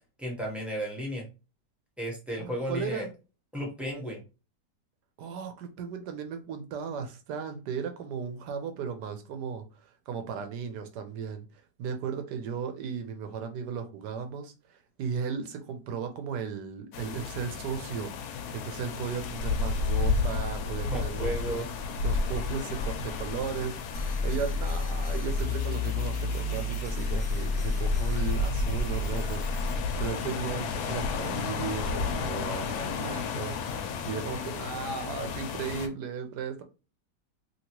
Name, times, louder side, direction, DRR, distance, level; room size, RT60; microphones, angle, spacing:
voice 1, 0.2-1.2 2.0-3.1 3.5-4.2 20.9-21.7, equal, ahead, 0.5 m, -33 dB
voice 2, 2.4-3.1 5.2-21.6 22.0-36.6, right 6 dB, 80° right, 1.2 m, -36 dB
sound 1, 16.9-35.9, left 4 dB, 70° left, 1.0 m, -32 dB
sound 2, 23.9-29.8, left 2 dB, 35° left, 0.8 m, -31 dB
2.9 x 2.8 x 2.9 m
omnidirectional pair, 1.9 m